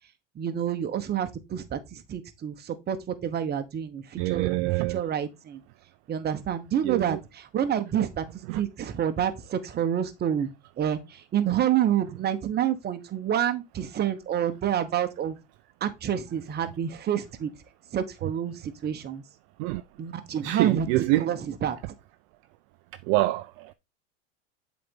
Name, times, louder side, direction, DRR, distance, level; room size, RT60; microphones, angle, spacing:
voice 1, 0.3-4.5 4.9-5.6 6.1-8.2 8.5-10.5 10.8-15.4 15.8-17.5 17.9-19.2 20.0-21.8, right 9 dB, 30° right, 1.0 m, -28 dB
voice 2, 4.2-5.0 6.8-7.2 8.5-8.6 19.6-19.8 20.4-21.3 23.1-23.7, right 18 dB, 50° right, 0.5 m, -26 dB
7.6 x 4.1 x 3.7 m
hypercardioid pair, 110°, 36 cm